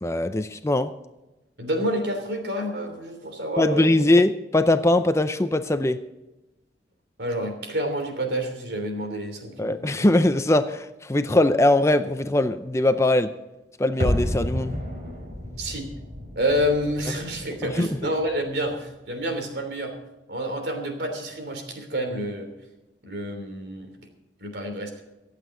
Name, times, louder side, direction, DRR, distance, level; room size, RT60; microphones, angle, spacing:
voice 1, 0.0-0.9 3.6-6.0 9.6-13.3 13.8-14.8 17.6-17.9, left 1 dB, 15° left, 10 dB, 0.5 m, -21 dB
voice 2, 1.6-3.9 7.2-10.1 15.6-15.9 16.3-20.0 20.3-22.5 23.0-23.9 24.4-24.9, equal, 70° right, 4 dB, 3.2 m, -28 dB
sound 1, 14.0-18.9 19.2-19.3, equal, 50° right, 5.5 m, -31 dB
24.5 x 8.3 x 3.8 m, 1.0 s
head